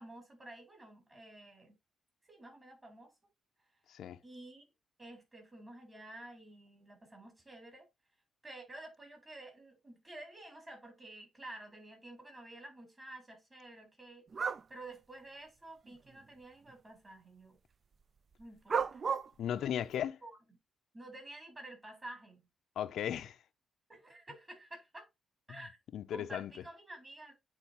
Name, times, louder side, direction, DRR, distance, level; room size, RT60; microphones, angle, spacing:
voice 1, 0.0-1.7 2.3-3.1 4.2-4.6 5.0-7.9 8.4-14.3 14.7-17.6 18.4-19.0 20.2-20.3 20.9-22.5 23.9-25.1 25.5-25.8 26.1-27.3, right 1 dB, 25° right, 4.3 m, -51 dB
sound 1, 14.3-14.6 15.9-16.0 18.7-19.3, right 6 dB, 45° right, 0.3 m, -32 dB
voice 2, 19.4-20.2 22.8-23.4 25.9-26.5, left 10 dB, 80° left, 0.5 m, -36 dB
9.2 x 4.1 x 2.9 m
cardioid pair, 105°, 0 cm